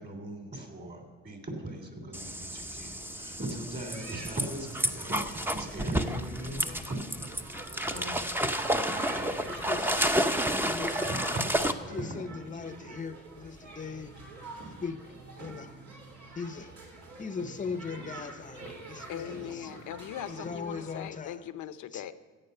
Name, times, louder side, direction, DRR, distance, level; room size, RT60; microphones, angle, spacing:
voice 1, 0.0-7.0 7.3-9.9 10.3-13.0, right 1 dB, 35° right, 4 dB, 3.2 m, -40 dB
sound 1, 2.1-11.7, equal, 5° right, 0.8 m, -31 dB
sound 2, 3.9-21.1, right 2 dB, 75° right, 3.9 m, -46 dB
voice 2, 6.4-6.8 9.2-9.9 10.5-11.1 11.9-14.1 14.8-15.0 15.4-15.8 16.4-16.7 17.2-19.7 20.3-21.5 21.9-22.1, left 5 dB, 25° left, 12 dB, 0.7 m, -39 dB
voice 3, 19.1-22.1, left 11 dB, 80° left, 12 dB, 0.8 m, -40 dB
14.0 x 8.8 x 6.7 m, 1.5 s
cardioid pair, 90°, 30 cm